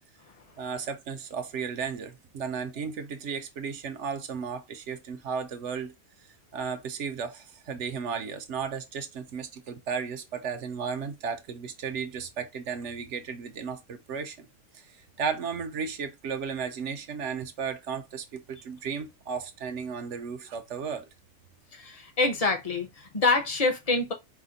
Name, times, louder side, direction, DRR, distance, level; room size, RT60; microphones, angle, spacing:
voice 1, 0.6-5.9 6.5-14.5 14.7-21.1, right 6 dB, 65° right, 0.9 m, -34 dB
voice 2, 21.7-24.1, left 3 dB, 30° left, 0.8 m, -26 dB
5.0 x 2.2 x 3.8 m
omnidirectional pair, 1.4 m